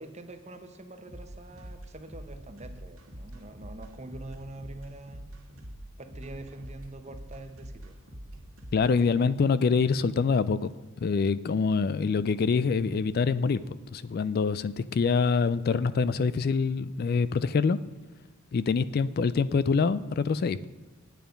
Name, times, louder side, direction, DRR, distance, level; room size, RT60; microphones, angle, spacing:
voice 1, 0.0-5.2 6.0-8.0, right 2 dB, 30° right, 8 dB, 0.9 m, -44 dB
sound 1, 1.1-8.9, equal, 80° right, 2.0 m, -44 dB
voice 2, 8.7-10.7 11.0-17.8 18.5-20.6, left 5 dB, 45° left, 16 dB, 0.3 m, -25 dB
9.2 x 8.9 x 5.2 m, 1.2 s
head